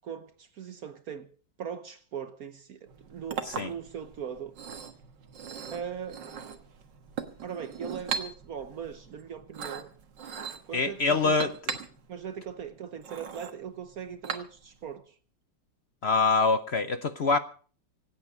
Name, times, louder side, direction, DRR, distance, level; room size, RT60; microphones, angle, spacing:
voice 1, 0.0-1.3 1.6-4.5 5.7-6.2 7.4-9.9 10.7-11.5 12.1-15.1, right 7 dB, 60° right, 1.3 m, -39 dB
Chink clink, 2.9-14.9, right 6 dB, 90° right, 2.2 m, -40 dB
voice 2, 10.7-11.5 16.0-17.4, left 4 dB, 50° left, 0.8 m, -25 dB
25.5 x 8.9 x 5.0 m
omnidirectional pair, 1.9 m